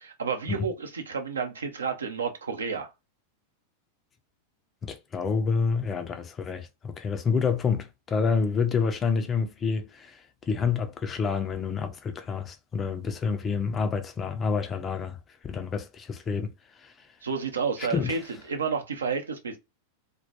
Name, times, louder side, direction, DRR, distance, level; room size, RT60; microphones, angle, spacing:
voice 1, 0.0-2.9 17.2-18.2 18.5-19.6, right 5 dB, 70° right, 0.6 m, -30 dB
voice 2, 4.8-15.2 15.4-16.5 16.8-16.9 17.8-18.2, left 5 dB, 25° left, 0.4 m, -28 dB
2.2 x 2.1 x 2.8 m
figure-of-eight pair, 90°, 0 cm